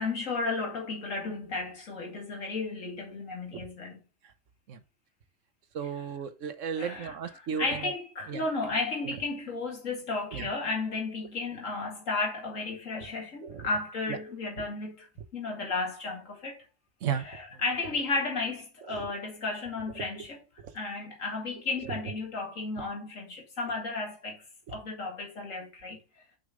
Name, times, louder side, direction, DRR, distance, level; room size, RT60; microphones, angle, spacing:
voice 1, 0.0-4.0 6.8-15.1 15.3-16.6 17.1-20.4 20.7-24.4 24.7-26.0, left 3 dB, 85° left, 2.4 m, -33 dB
voice 2, 5.7-7.9 8.3-8.4 10.3-10.5 13.4-13.7 14.6-14.7 17.0-17.3 18.9-19.1, right 7 dB, 75° right, 1.3 m, -34 dB
6.3 x 5.7 x 3.8 m
omnidirectional pair, 1.3 m